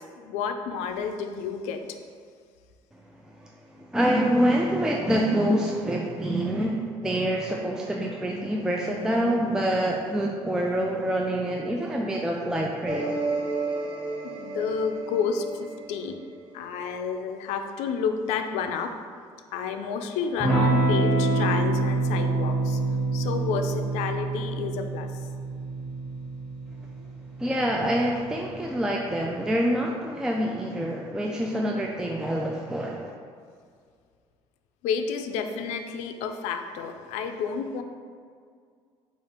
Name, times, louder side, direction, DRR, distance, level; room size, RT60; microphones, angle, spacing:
voice 1, 0.0-1.8 14.2-15.4 15.9-16.2 16.5-18.9 19.5-22.8 23.1-25.1 34.8-37.8, left 6 dB, 85° left, 6 dB, 0.4 m, -30 dB
voice 2, 3.8-13.1 27.4-33.1, right 1 dB, 5° right, -1 dB, 0.3 m, -26 dB
sound 1, 12.9-16.7, right 3 dB, 40° right, 1.2 m, -32 dB
Electric guitar / Strum, 20.4-28.7, right 2 dB, 15° left, 1.5 m, -26 dB
4.9 x 2.4 x 4.3 m, 2.1 s
cardioid pair, 115°, 11 cm